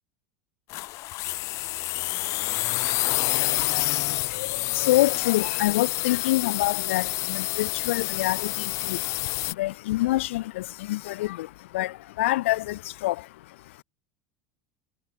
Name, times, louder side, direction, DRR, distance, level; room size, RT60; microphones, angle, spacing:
sound 1, 0.7-9.5, left 21 dB, 50° left, 1.5 m, -28 dB
voice 1, 3.6-13.8, left 17 dB, 85° left, 2.5 m, -27 dB
supercardioid pair, 140°, 7 cm